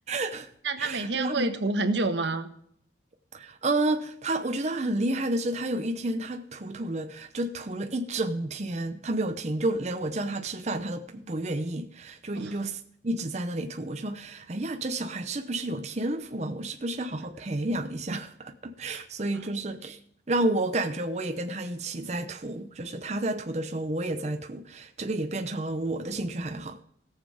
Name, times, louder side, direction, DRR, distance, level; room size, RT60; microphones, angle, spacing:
voice 1, 0.1-0.5 0.8-1.5 3.3-20.0 20.3-26.8, right 2 dB, 40° right, 0.7 m, -31 dB
voice 2, 0.6-2.5 12.3-12.6, right 3 dB, 85° right, 1.3 m, -28 dB
17.0 x 7.4 x 5.0 m
head